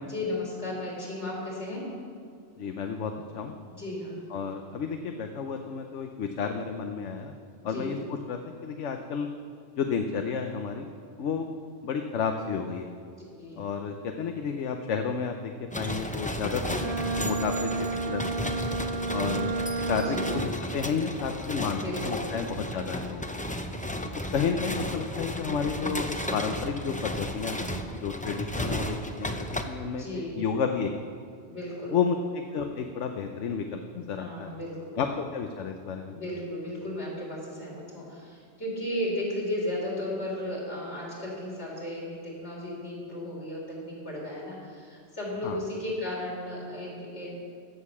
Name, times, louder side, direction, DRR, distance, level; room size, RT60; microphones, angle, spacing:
voice 1, 0.1-1.9 3.8-4.2 7.6-7.9 13.4-13.6 20.1-20.4 21.7-22.4 30.0-30.4 31.5-31.9 34.2-35.0 36.1-47.3, left 1 dB, 65° left, -5 dB, 4.1 m, -35 dB
voice 2, 2.6-3.5 4.3-7.3 7.6-8.0 8.3-9.3 9.8-11.5 11.8-12.9 13.6-16.9 17.2-18.5 19.1-19.5 19.8-23.3 24.3-27.7 28.0-30.9 31.9-34.5 35.0-36.1 45.4-45.6, left 6 dB, 80° left, 5 dB, 1.1 m, -31 dB
sound 1, 15.7-29.6, left 1 dB, 10° left, 0.5 m, -34 dB
Bowed string instrument, 16.6-20.8, right 3 dB, 55° right, 0.7 m, -31 dB
16.0 x 6.6 x 7.1 m, 2.4 s
omnidirectional pair, 1.2 m